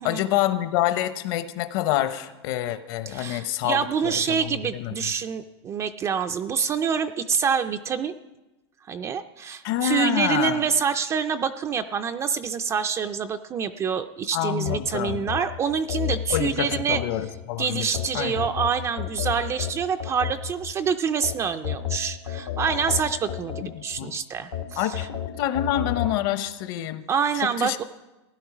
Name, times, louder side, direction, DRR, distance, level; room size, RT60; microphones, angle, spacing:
voice 1, 0.0-4.4 4.7-4.9 9.6-10.6 14.3-15.2 16.3-17.9 18.1-18.5 23.6-24.1 24.8-27.0 27.3-27.8, left 12 dB, 55° left, 11 dB, 0.9 m, -27 dB
voice 2, 3.1-8.1 8.9-17.0 17.6-25.1 27.1-27.8, right 6 dB, 20° right, 8 dB, 0.4 m, -26 dB
sound 1, 14.7-17.4 17.9-20.7 21.2-24.0 24.5-26.2, left 11 dB, 85° left, 1.4 m, -31 dB
15.5 x 11.0 x 4.9 m, 1.0 s
supercardioid pair, 145°, 15 cm